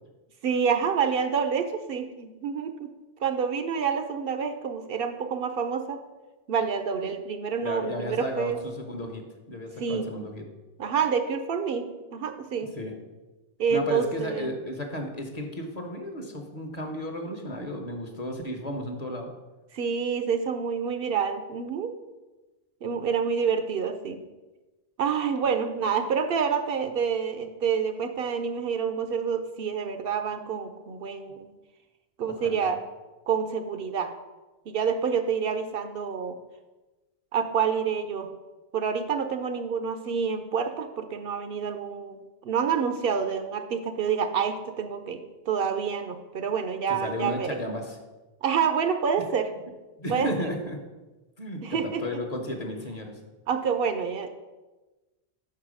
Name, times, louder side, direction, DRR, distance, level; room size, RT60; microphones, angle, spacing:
voice 1, 0.4-2.9 3.2-6.0 6.5-8.6 9.8-10.1 10.8-12.7 13.6-14.5 19.7-21.9 22.8-24.2 25.0-31.5 32.2-32.8 33.3-34.1 34.7-36.4 37.3-38.3 38.7-45.2 45.5-47.6 48.4-49.5 50.1-50.3 51.6-52.0 53.5-54.3, right 6 dB, 65° right, 8 dB, 0.7 m, -28 dB
voice 2, 7.6-10.4 12.8-12.9 13.7-19.3 32.3-32.7 46.9-48.0 50.0-50.8 51.4-53.2, left 1 dB, 40° left, 3 dB, 0.9 m, -34 dB
5.6 x 4.7 x 6.2 m, 1.2 s
omnidirectional pair, 1.1 m